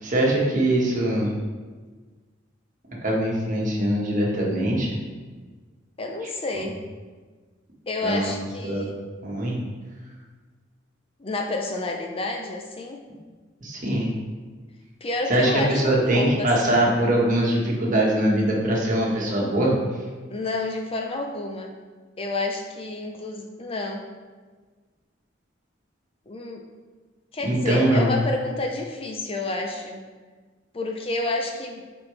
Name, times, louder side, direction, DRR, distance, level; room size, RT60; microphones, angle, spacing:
voice 1, 0.0-1.3 3.0-4.9 8.0-8.3 8.6-8.8 9.2-9.5 13.6-14.1 15.3-19.7 27.4-28.1, right 1 dB, 40° right, -3 dB, 1.5 m, -22 dB
voice 2, 6.0-6.8 7.9-9.0 11.2-13.0 15.0-16.8 20.3-21.7 22.2-24.1 26.3-26.6 27.3-30.0 30.7-31.8, left 2 dB, 30° left, 2 dB, 0.5 m, -29 dB
8.4 x 4.4 x 3.2 m, 1.4 s
head